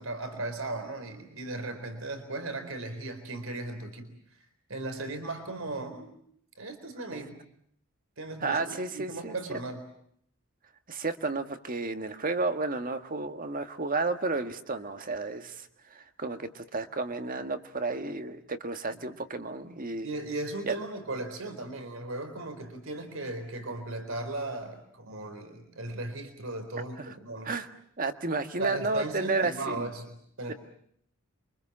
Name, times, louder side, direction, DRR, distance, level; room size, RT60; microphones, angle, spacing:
voice 1, 0.0-4.2 4.7-6.1 6.6-7.3 8.2-9.8 20.0-27.5 28.6-30.5, right 2 dB, 70° right, 7 dB, 4.2 m, -37 dB
voice 2, 8.4-9.4 10.9-20.1 20.6-20.7 27.0-27.1 27.4-27.7 28.0-29.9 30.5-30.6, right 3 dB, 40° right, 8 dB, 1.7 m, -32 dB
28.0 x 24.5 x 7.4 m, 0.66 s
head